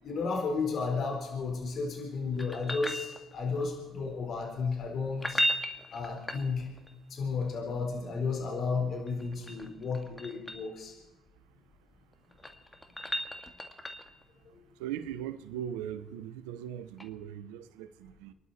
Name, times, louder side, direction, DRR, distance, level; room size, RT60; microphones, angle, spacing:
voice 1, 0.0-5.4 5.9-6.7 7.1-10.9, left 4 dB, 60° left, 4.3 m, -33 dB
sound 1, 2.4-3.6 5.1-6.9 9.1-10.7 12.1-14.2 17.0-17.1, equal, 20° left, 2.0 m, -35 dB
voice 2, 14.8-18.3, right 10 dB, 90° right, 0.9 m, -39 dB
29.0 x 11.5 x 4.3 m
supercardioid pair, 60°, 0 cm